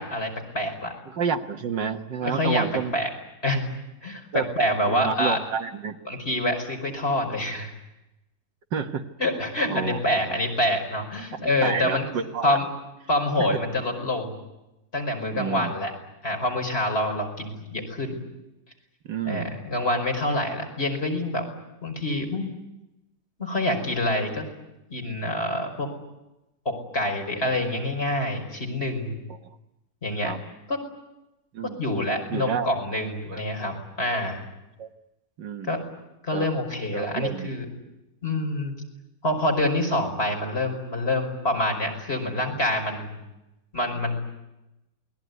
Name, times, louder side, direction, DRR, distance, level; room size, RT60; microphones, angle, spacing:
voice 1, 0.0-0.9 2.2-2.7 2.9-3.1 3.4-3.7 4.0-5.4 6.1-7.7 9.2-12.1 12.4-12.7 13.1-14.4 14.9-15.9 16.2-18.2 19.2-21.4 21.8-22.5 23.4-24.5 24.9-25.9 26.7-29.2 30.0-30.3 30.7-30.8 31.6-34.4 35.7-35.8 36.2-37.7 38.2-38.8 39.2-43.2 43.7-44.2, left 1 dB, 35° left, 3 dB, 5.6 m, -26 dB
voice 2, 1.1-3.0 4.3-4.5 4.9-6.0 8.7-9.1 9.7-10.4 11.3-12.6 15.3-15.7 19.1-19.6 29.4-29.5 30.2-30.4 31.5-31.8 32.3-32.7 33.3-33.4 34.8-34.9 35.4-35.9 36.3-36.5 36.9-37.5, right 7 dB, 75° right, 5 dB, 2.1 m, -30 dB
28.5 x 21.0 x 9.5 m, 0.95 s
omnidirectional pair, 1.9 m